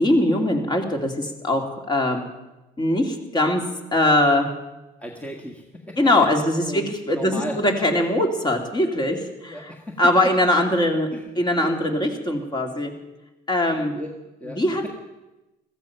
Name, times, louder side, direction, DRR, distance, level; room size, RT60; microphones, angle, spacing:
voice 1, 0.0-2.2 2.8-3.6 3.9-4.5 6.0-9.7 10.0-11.1 11.4-12.9 13.5-13.9 14.5-14.8, left 1 dB, 25° left, 3 dB, 2.6 m, -21 dB
voice 2, 5.0-6.0 6.7-6.9 7.1-7.6 9.3-10.0 11.1-11.7 13.7-14.1 14.4-14.9, equal, 10° left, 0 dB, 1.6 m, -36 dB
15.5 x 14.0 x 5.8 m, 1.0 s
cardioid pair, 110°, 17 cm